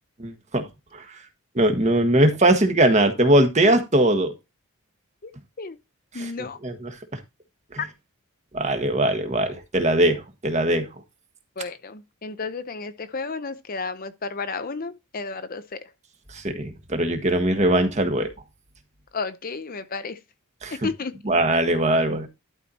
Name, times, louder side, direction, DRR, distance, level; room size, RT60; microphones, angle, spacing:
voice 1, 0.2-0.7 0.9-1.0 1.5-4.3 6.1-6.3 6.6-7.0 8.5-10.9 16.3-18.3 20.6-20.9 21.2-22.3, right 1 dB, 30° right, 1.5 m, -21 dB
voice 2, 6.1-6.6 11.6-15.8 19.1-20.2 20.8-21.1, left 4 dB, 40° left, 0.7 m, -32 dB
12.0 x 4.6 x 4.1 m
head